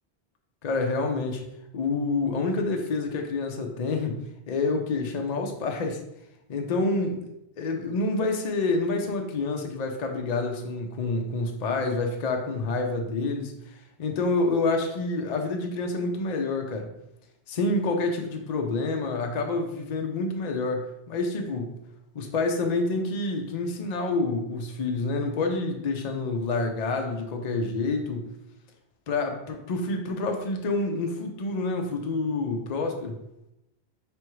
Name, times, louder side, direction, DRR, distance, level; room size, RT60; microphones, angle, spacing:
voice 1, 0.6-1.4 1.7-4.2 4.5-6.0 6.5-7.2 7.6-16.9 17.5-21.8 22.1-28.3 29.1-33.1, left 3 dB, 50° left, 3 dB, 0.6 m, -28 dB
4.7 x 3.5 x 3.0 m, 0.85 s
omnidirectional pair, 1.1 m